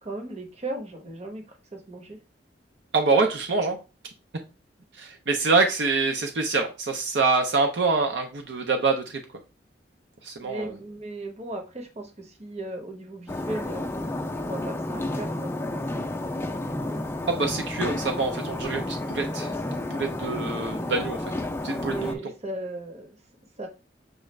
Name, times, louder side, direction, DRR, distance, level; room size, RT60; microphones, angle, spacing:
voice 1, 0.0-2.2 10.4-13.9 14.4-16.3 20.8-20.9 21.8-23.2 23.6-23.7, right 2 dB, 35° right, 4 dB, 0.9 m, -37 dB
voice 2, 2.9-3.8 5.0-9.2 10.2-10.7 17.2-19.5 19.9-21.2 21.6-22.2, right 3 dB, 70° right, 3 dB, 0.6 m, -25 dB
sound 1, 13.3-22.1, left 1 dB, 15° left, 0.5 m, -31 dB
6.3 x 2.4 x 3.2 m, 0.30 s
head